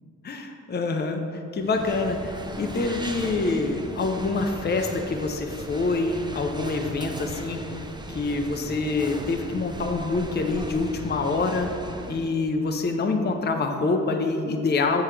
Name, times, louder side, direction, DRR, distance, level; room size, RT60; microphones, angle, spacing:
voice 1, 0.2-7.6 8.1-11.7 12.1-15.0, left 3 dB, 30° left, 4 dB, 0.6 m, -26 dB
sound 1, 1.6-12.3, right 2 dB, 15° right, 0.5 m, -37 dB
6.8 x 4.5 x 3.2 m, 2.4 s
supercardioid pair, 45°, 35 cm